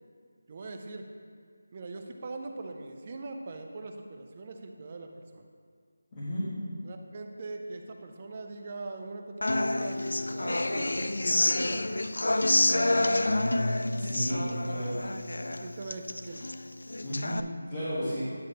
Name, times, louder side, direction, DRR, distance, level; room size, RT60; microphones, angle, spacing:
voice 1, 0.5-1.1 1.7-5.5 6.8-11.9 12.5-13.3 14.7-14.8 15.6-16.5 18.0-18.2, right 3 dB, 20° right, 4 dB, 0.4 m, -42 dB
voice 2, 6.1-6.5 14.0-15.0 17.0-17.4 17.7-18.2, equal, 20° left, -12 dB, 1.3 m, -33 dB
Human voice / Acoustic guitar, 9.4-17.4, left 2 dB, 85° left, 0.3 m, -28 dB
9.8 x 3.4 x 6.6 m, 2.1 s
figure-of-eight pair, 180°, 0 cm